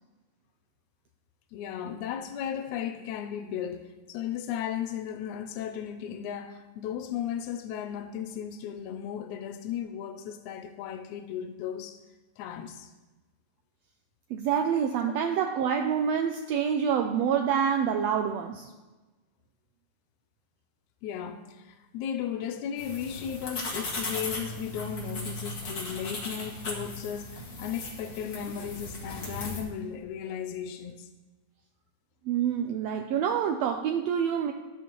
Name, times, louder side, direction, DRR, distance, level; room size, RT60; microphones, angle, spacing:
voice 1, 1.5-12.0 12.4-12.9 21.0-31.1, left 9 dB, 85° left, 2.0 m, -35 dB
voice 2, 14.3-18.7 32.3-34.5, right 8 dB, 80° right, 1.6 m, -27 dB
sound 1, 22.8-29.6, left 2 dB, 50° left, 2.9 m, -37 dB
13.0 x 11.0 x 3.0 m
omnidirectional pair, 3.3 m